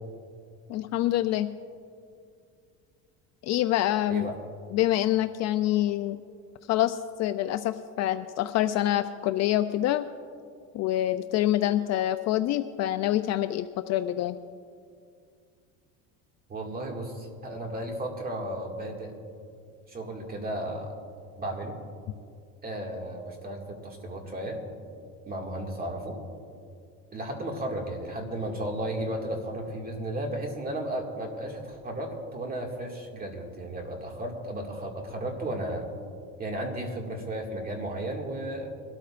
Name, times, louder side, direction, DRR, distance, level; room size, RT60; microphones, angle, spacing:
voice 1, 0.7-1.5 3.4-4.3 4.7-6.2 6.7-10.0 10.7-14.4, left 13 dB, 45° left, 10 dB, 0.4 m, -26 dB
voice 2, 16.5-19.1 19.9-20.9 21.4-21.8 22.6-24.7 25.3-26.2 27.1-35.8 36.4-38.7, right 1 dB, 25° right, 1 dB, 2.1 m, -34 dB
22.5 x 13.0 x 2.5 m, 2.3 s
cardioid pair, 135°, 38 cm